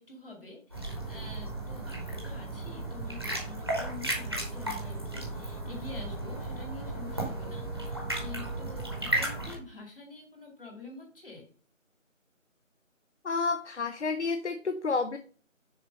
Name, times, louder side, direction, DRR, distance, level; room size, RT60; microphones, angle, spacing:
voice 1, 0.0-11.5, left 3 dB, 45° left, 1 dB, 2.3 m, -47 dB
sound 1, 0.7-9.5, right 1 dB, 20° right, 1.1 m, -34 dB
voice 2, 13.2-15.2, left 4 dB, 60° left, 9 dB, 0.6 m, -30 dB
6.5 x 4.3 x 5.3 m, 0.42 s
figure-of-eight pair, 170°, 40 cm